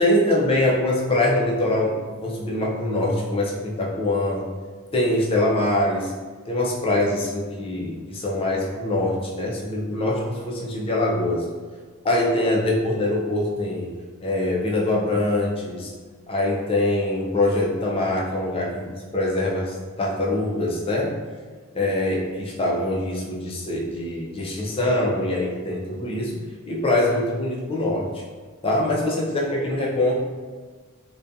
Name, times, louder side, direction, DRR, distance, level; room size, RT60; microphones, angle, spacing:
voice 1, 0.0-4.5 4.9-6.1 6.5-11.5 12.0-15.9 16.3-21.2 21.7-28.2 28.6-30.2, left 1 dB, 25° left, -2 dB, 0.4 m, -24 dB
2.4 x 2.2 x 2.6 m, 1.4 s
head